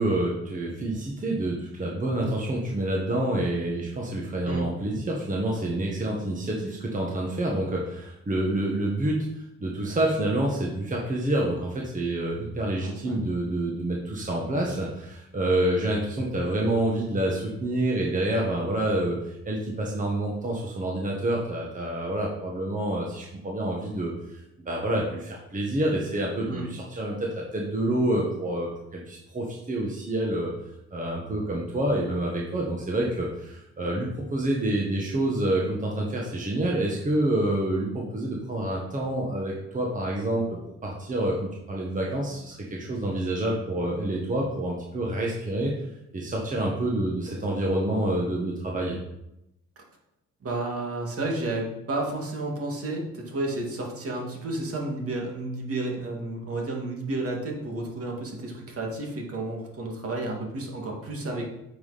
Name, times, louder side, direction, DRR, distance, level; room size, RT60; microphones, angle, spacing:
voice 1, 0.0-9.3 9.6-30.5 30.9-45.7 46.1-49.0, right 1 dB, 25° right, -2 dB, 1.6 m, -28 dB
voice 2, 12.8-13.2 26.5-26.7 50.4-61.4, right 2 dB, 50° right, 0 dB, 2.3 m, -31 dB
8.5 x 5.6 x 4.2 m, 0.85 s
cardioid pair, 90°, 30 cm